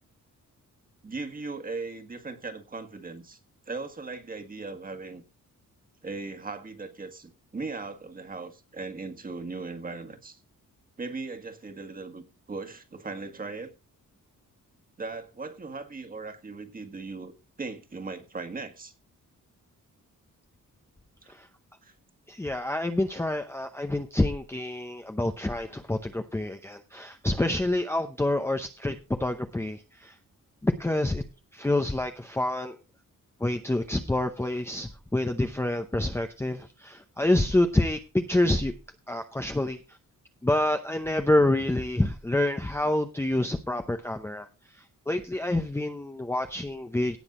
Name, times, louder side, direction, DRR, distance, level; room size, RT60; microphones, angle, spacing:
voice 1, 1.0-3.4 3.7-5.2 6.0-10.4 11.0-13.7 15.0-17.3 17.6-18.9 21.8-21.9, right 3 dB, 25° right, 1.7 m, -38 dB
voice 2, 22.3-30.1 30.6-31.2 31.5-32.8 33.4-38.7 39.1-39.8 40.4-44.5 45.1-47.2, left 1 dB, 10° left, 0.7 m, -27 dB
17.5 x 6.4 x 3.8 m
wide cardioid pair, 175°, 32 cm